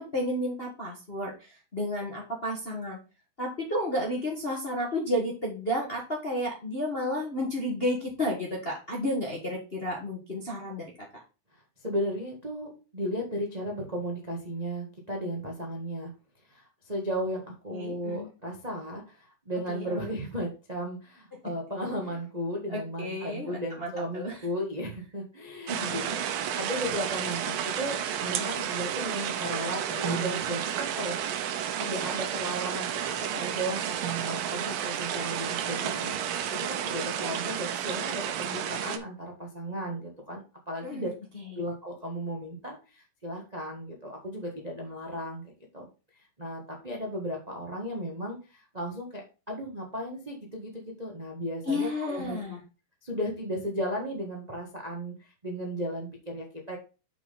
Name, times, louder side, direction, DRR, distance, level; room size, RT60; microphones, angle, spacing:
voice 1, 0.1-3.0 3.4-10.8 17.7-18.3 19.7-20.1 21.3-21.4 22.7-24.3 25.7-25.9 40.8-41.1 41.3-41.6 51.6-52.6, left 1 dB, 30° left, -1 dB, 1.1 m, -32 dB
voice 2, 11.5-16.1 16.5-26.2 26.6-31.4 31.8-41.1 41.5-45.9 46.4-52.6 53.0-56.8, equal, 30° right, -1 dB, 0.7 m, -35 dB
sound 1, 25.7-39.0, right 9 dB, 85° right, 2.5 m, -31 dB
6.1 x 6.0 x 4.0 m, 0.31 s
omnidirectional pair, 3.8 m